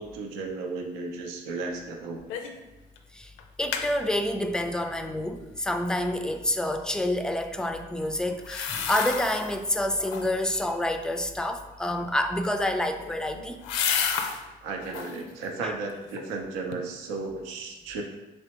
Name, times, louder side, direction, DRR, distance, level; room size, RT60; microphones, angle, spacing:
voice 1, 0.0-2.2 14.6-18.0, right 3 dB, 85° right, 2 dB, 0.6 m, -34 dB
sound 1, 2.3-2.6 3.0-3.1 3.4-3.9 8.4-9.6 10.0-10.5 12.5-14.4 14.8-15.2 15.7-16.4 16.7-16.8, left 7 dB, 75° left, 0.4 m, -31 dB
voice 2, 3.6-13.6 15.6-15.7, left 1 dB, 5° left, 6 dB, 0.4 m, -28 dB
3.4 x 3.3 x 2.9 m, 1.0 s
hypercardioid pair, 60°, 21 cm